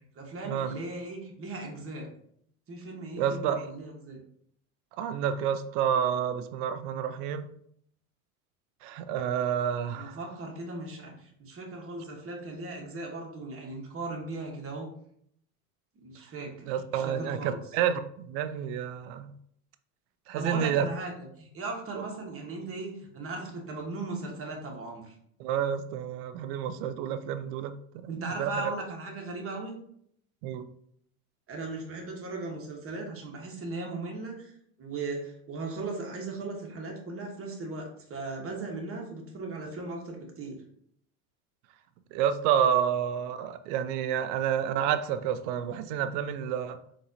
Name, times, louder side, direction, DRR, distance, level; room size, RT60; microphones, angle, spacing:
voice 1, 0.1-2.1 2.7-4.2 9.9-14.9 16.0-17.6 20.3-25.1 28.1-29.8 31.5-34.5 34.8-40.6, right 3 dB, 30° right, 0 dB, 1.2 m, -37 dB
voice 2, 3.2-3.7 5.0-7.5 8.8-10.2 16.7-19.3 20.3-20.9 25.4-28.5 30.4-30.7 42.1-46.8, right 9 dB, 55° right, 12 dB, 0.5 m, -29 dB
4.0 x 2.7 x 2.6 m, 0.67 s
hypercardioid pair, 85°, 43 cm